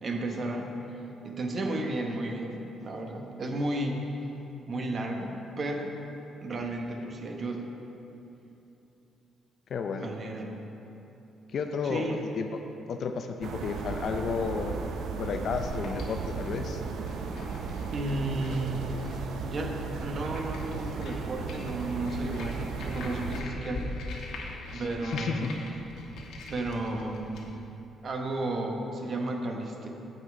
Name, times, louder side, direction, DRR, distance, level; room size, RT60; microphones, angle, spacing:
voice 1, 0.0-4.2 4.7-5.9 6.4-7.7 10.0-10.6 11.8-12.2 17.9-18.8 19.4-24.0 24.7-25.5 26.5-27.5 28.0-29.9, right 2 dB, 45° right, 2 dB, 1.0 m, -33 dB
voice 2, 9.7-10.1 11.5-12.1 12.4-12.6 12.9-14.8 15.2-16.8 24.7-25.5, left 5 dB, 60° left, 5 dB, 0.5 m, -32 dB
sound 1, 13.4-23.4, right 5 dB, 75° right, 0.5 m, -35 dB
sound 2, 15.2-27.5, left 2 dB, 80° left, 1.1 m, -43 dB
7.4 x 6.5 x 4.8 m, 3.0 s
cardioid pair, 90°, 0 cm